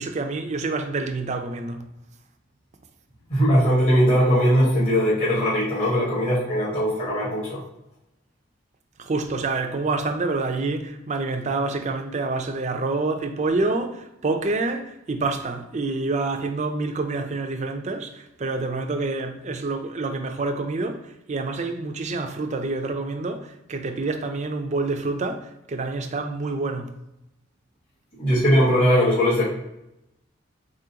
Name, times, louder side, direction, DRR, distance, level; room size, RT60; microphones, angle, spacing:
voice 1, 0.0-1.9 9.0-26.9, right 3 dB, 40° right, 0.5 m, -27 dB
voice 2, 3.3-7.6 28.2-29.4, equal, 35° left, 1.3 m, -20 dB
3.9 x 3.7 x 2.8 m
head